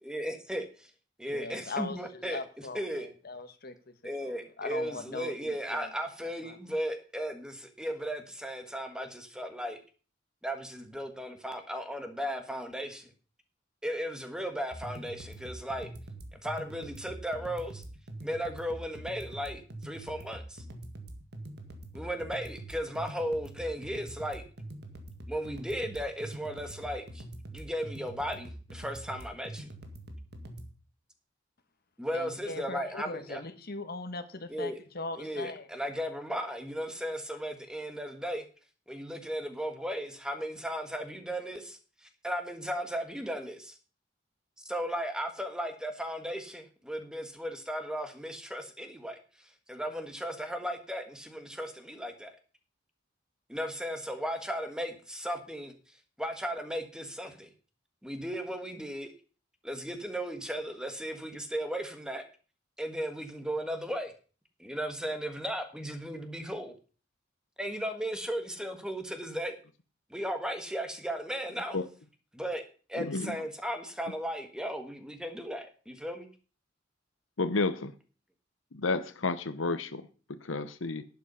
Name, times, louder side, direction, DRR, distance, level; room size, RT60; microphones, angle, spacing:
voice 1, 0.0-0.9 1.2-2.4 2.7-3.1 4.0-9.8 10.4-13.1 13.8-15.9 16.3-17.8 18.2-20.6 21.9-24.4 25.3-27.2 27.5-29.7 32.0-33.4 34.5-34.8 35.2-38.4 38.9-43.8 44.6-52.3 53.5-55.7 56.2-57.5 58.0-59.1 59.6-62.3 62.8-64.1 64.6-66.7 67.6-69.5 70.1-71.8 72.3-72.6 72.9-76.3, equal, 5° right, 1.5 m, -36 dB
voice 2, 1.3-3.9 4.2-6.6 32.1-35.7, left 3 dB, 50° left, 1.4 m, -40 dB
sound 1, 14.7-30.7, right 1 dB, 55° right, 1.9 m, -44 dB
voice 3, 72.9-73.4 77.4-77.9 78.7-81.0, left 3 dB, 90° left, 0.9 m, -31 dB
11.5 x 8.3 x 5.5 m
head